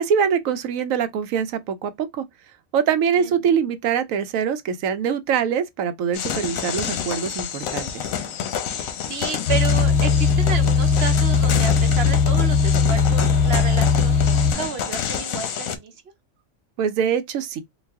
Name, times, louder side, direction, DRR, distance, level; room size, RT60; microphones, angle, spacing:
voice 1, 0.0-2.2 2.7-8.1 16.8-17.6, right 7 dB, 80° right, 1.0 m, -23 dB
voice 2, 3.2-3.5 8.7-15.9, right 5 dB, 60° right, 0.8 m, -31 dB
sound 1, 6.1-15.8, left 8 dB, 85° left, 1.1 m, -29 dB
sound 2, 9.5-14.5, left 5 dB, 60° left, 0.9 m, -18 dB
3.9 x 2.4 x 3.4 m
omnidirectional pair, 1.4 m